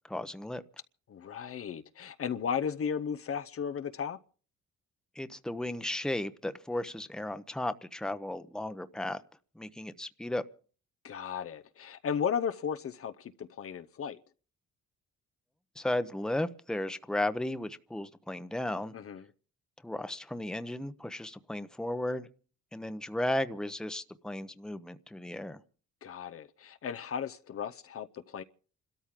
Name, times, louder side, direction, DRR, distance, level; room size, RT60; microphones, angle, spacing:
voice 1, 0.1-0.6 5.1-9.2 9.6-10.4 15.8-18.9 19.8-22.3 22.7-25.6, left 1 dB, ahead, 0.9 m, -35 dB
voice 2, 1.1-4.2 11.0-14.2 18.9-19.2 26.0-28.4, left 7 dB, 50° left, 0.8 m, -35 dB
28.5 x 13.0 x 3.7 m
cardioid pair, 90°, 30 cm